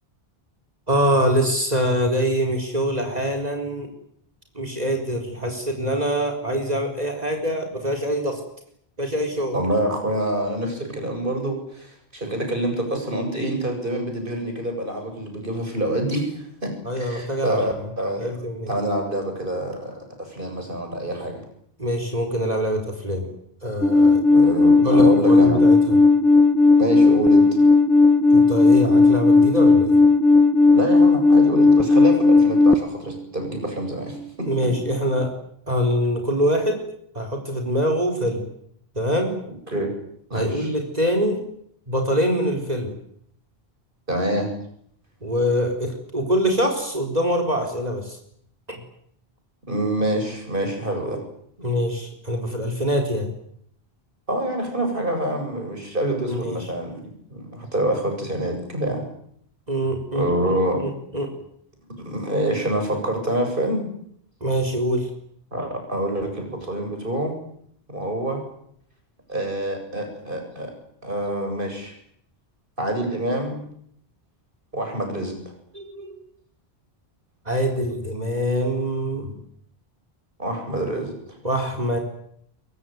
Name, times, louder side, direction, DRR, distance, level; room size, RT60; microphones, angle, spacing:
voice 1, 0.9-3.9 4.5-8.4 9.0-9.6 16.8-17.6 18.2-18.7 21.8-23.3 23.6-24.2 24.8-26.0 28.3-30.0 34.5-35.3 35.7-36.8 37.1-38.5 39.0-39.3 40.3-41.4 41.9-42.9 45.2-48.2 51.6-53.3 56.3-56.6 59.7-60.3 60.8-61.3 64.4-65.1 75.7-76.1 77.5-79.3 81.4-82.0, equal, 40° right, 4 dB, 4.3 m, -24 dB
voice 2, 9.5-18.3 18.7-21.4 24.3-25.6 26.8-27.6 30.7-34.5 39.4-39.9 40.3-40.7 44.1-44.5 49.7-51.2 54.3-59.0 60.1-60.9 62.0-63.9 65.5-67.3 67.9-68.4 69.3-70.7 71.0-71.9 72.8-73.6 74.7-75.3 80.4-81.1, right 1 dB, 55° right, 3 dB, 8.2 m, -26 dB
Alarm, 23.8-32.7, left 3 dB, ahead, 1.0 m, -15 dB
23.0 x 23.0 x 9.4 m, 0.69 s
omnidirectional pair, 1.0 m